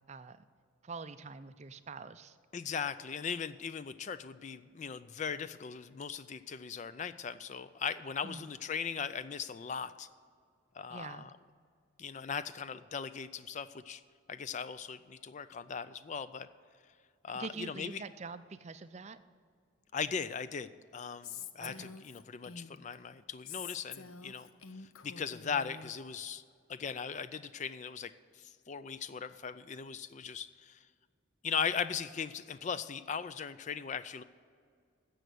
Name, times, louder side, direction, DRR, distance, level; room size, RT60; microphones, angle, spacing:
voice 1, 0.1-0.4 0.8-2.4 8.2-8.5 10.9-11.3 17.3-19.2 21.6-21.8, right 4 dB, 35° right, 12 dB, 0.4 m, -45 dB
voice 2, 2.5-10.1 10.7-11.3 12.0-14.0 14.3-16.5 17.2-18.0 19.9-24.5 24.8-26.4 26.7-30.9 31.4-34.2, left 6 dB, 35° left, 14 dB, 0.3 m, -39 dB
Female speech woman speaking, 21.2-23.0 23.5-25.9, left 7 dB, 85° left, 0.6 m, -47 dB
12.5 x 7.8 x 6.8 m, 2.1 s
head